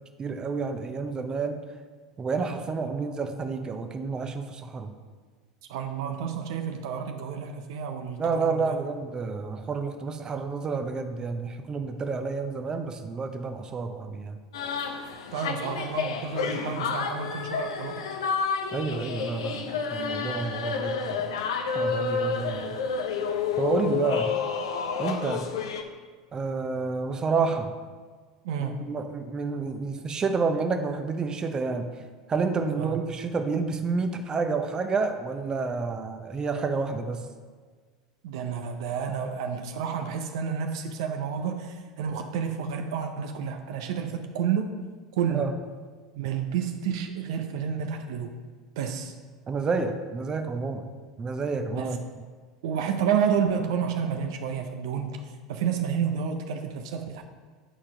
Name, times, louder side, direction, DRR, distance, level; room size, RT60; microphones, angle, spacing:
voice 1, 0.2-1.6 2.2-4.9 8.2-14.4 18.7-21.3 21.7-22.8 23.6-24.3 25.0-25.5 26.3-27.7 28.6-31.9 32.3-37.2 45.3-45.5 49.5-50.9 51.2-52.0, right 4 dB, 25° right, 7 dB, 0.7 m, -29 dB
voice 2, 5.7-8.7 15.3-18.1 28.4-28.9 32.8-33.0 38.2-44.8 45.2-45.5 46.2-48.3 48.8-49.1 51.7-52.0 52.6-55.2 55.5-57.2, right 7 dB, 65° right, 5 dB, 0.6 m, -30 dB
sound 1, 14.5-25.8, left 5 dB, 75° left, 0.7 m, -30 dB
9.1 x 4.4 x 4.8 m, 1.5 s
hypercardioid pair, 80°, 3 cm